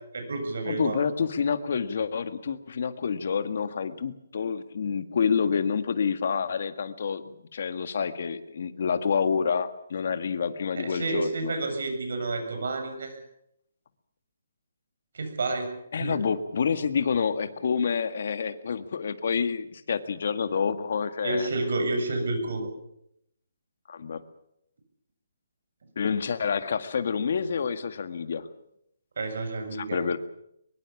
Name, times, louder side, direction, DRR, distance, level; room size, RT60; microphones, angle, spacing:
voice 1, 0.1-1.0 10.8-13.2 15.1-16.2 21.2-22.7 29.2-30.0, right 2 dB, 60° right, 6 dB, 7.3 m, -30 dB
voice 2, 0.6-11.5 15.9-21.5 23.9-24.2 26.0-28.5 29.8-30.2, left 6 dB, 50° left, 10 dB, 1.9 m, -28 dB
23.5 x 22.0 x 7.3 m, 0.76 s
hypercardioid pair, 175°, 0 cm